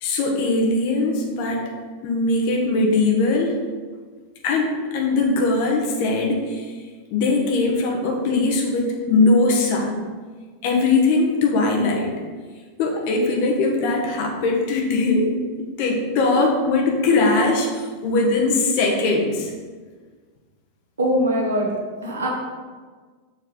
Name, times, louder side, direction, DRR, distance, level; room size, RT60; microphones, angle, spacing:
voice 1, 0.0-1.6 2.0-3.5 4.4-6.7 7.1-10.0 10.6-12.1 12.8-15.3 15.8-19.5, left 3 dB, 45° left, 0 dB, 1.4 m, -20 dB
voice 2, 21.0-21.7 22.0-22.3, equal, 70° right, -2 dB, 1.7 m, -21 dB
7.0 x 3.9 x 5.3 m, 1.5 s
figure-of-eight pair, 90°, 0 cm